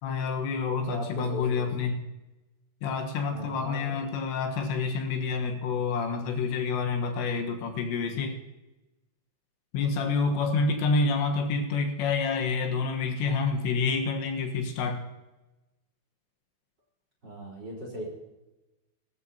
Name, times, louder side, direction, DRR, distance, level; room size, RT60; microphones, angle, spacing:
voice 1, 0.0-2.0 2.8-8.4 9.7-15.0, left 4 dB, 80° left, 3 dB, 3.6 m, -28 dB
voice 2, 0.9-1.9 3.3-4.0 17.2-18.0, equal, 25° right, -2 dB, 3.9 m, -38 dB
22.0 x 13.0 x 2.9 m, 1.0 s
omnidirectional pair, 5.1 m